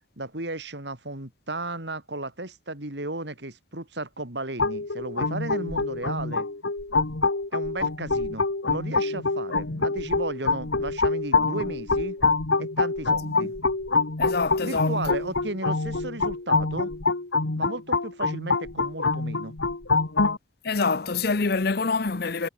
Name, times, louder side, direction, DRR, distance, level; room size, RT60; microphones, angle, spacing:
voice 1, 0.2-6.5 7.5-12.2 12.6-13.5 14.6-16.9 17.6-19.5, right 2 dB, 65° right, 4.2 m, -34 dB
sound 1, 4.6-20.4, left 3 dB, 80° left, 1.6 m, -26 dB
voice 2, 14.2-15.0 20.6-22.5, left 4 dB, 55° left, 0.8 m, -26 dB
head